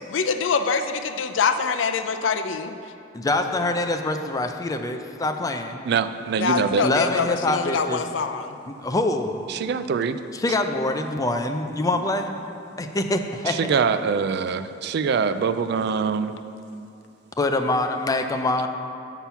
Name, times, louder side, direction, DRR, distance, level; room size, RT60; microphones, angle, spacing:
voice 1, 0.1-2.7 6.4-8.6, left 5 dB, 85° left, 9 dB, 0.5 m, -24 dB
voice 2, 3.1-5.8 6.8-8.0 8.7-9.3 10.3-12.4 12.8-13.6 17.4-18.7, left 2 dB, 20° left, 6 dB, 0.4 m, -25 dB
voice 3, 5.8-6.9 9.5-10.2 13.5-16.4, right 6 dB, 60° right, 11 dB, 0.3 m, -24 dB
7.1 x 5.9 x 5.6 m, 2.5 s
head